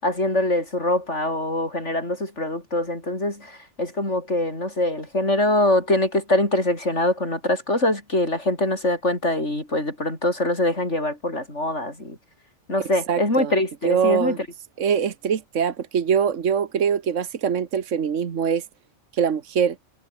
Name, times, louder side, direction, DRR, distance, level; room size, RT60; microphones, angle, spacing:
voice 1, 0.0-12.2 12.7-14.5, left 1 dB, 65° left, 7.7 m, -23 dB
voice 2, 13.1-13.5 13.8-14.4 14.8-18.6 19.1-19.8, right 7 dB, 75° right, 1.6 m, -23 dB
omnidirectional pair, 1.3 m